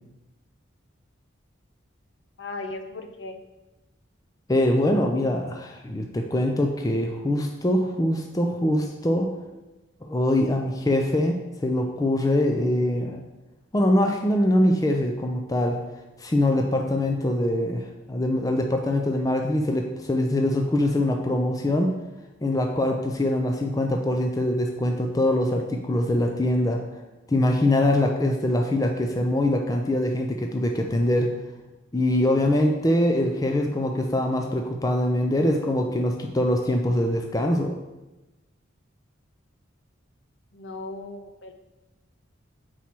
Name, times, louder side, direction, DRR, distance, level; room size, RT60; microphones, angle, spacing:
voice 1, 2.4-3.4 40.5-41.5, left 2 dB, 60° left, 6 dB, 0.6 m, -37 dB
voice 2, 4.5-9.3 10.0-13.2 13.7-15.8 16.2-21.9 22.4-26.8 27.3-31.3 31.9-37.7, left 1 dB, 15° left, 2 dB, 0.4 m, -23 dB
4.7 x 4.2 x 5.9 m, 1.1 s
head